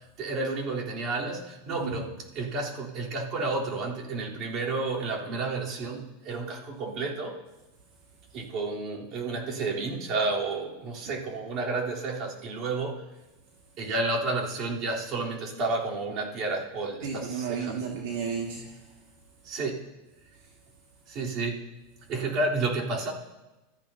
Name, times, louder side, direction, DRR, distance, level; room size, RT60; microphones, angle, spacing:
voice 1, 0.2-7.3 8.3-13.0 13.8-17.8 19.5-19.9 21.1-21.6 22.1-23.1, right 3 dB, 45° right, -3 dB, 3.5 m, -31 dB
voice 2, 17.0-18.8, right 6 dB, 70° right, -1 dB, 1.9 m, -33 dB
25.0 x 14.0 x 2.8 m, 1.1 s
supercardioid pair, 130°, 0 cm